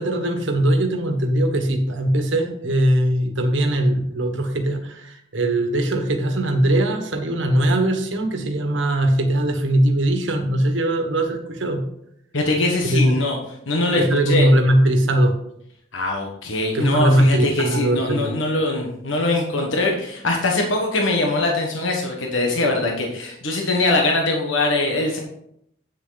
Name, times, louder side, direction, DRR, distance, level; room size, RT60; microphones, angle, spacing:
voice 1, 0.0-11.8 12.8-13.2 14.0-15.3 16.7-18.3, right 1 dB, 75° right, 5 dB, 1.5 m, -20 dB
voice 2, 12.3-13.4 13.7-14.5 15.9-25.2, left 2 dB, 85° left, 1 dB, 1.5 m, -22 dB
9.0 x 6.8 x 4.0 m, 0.74 s
head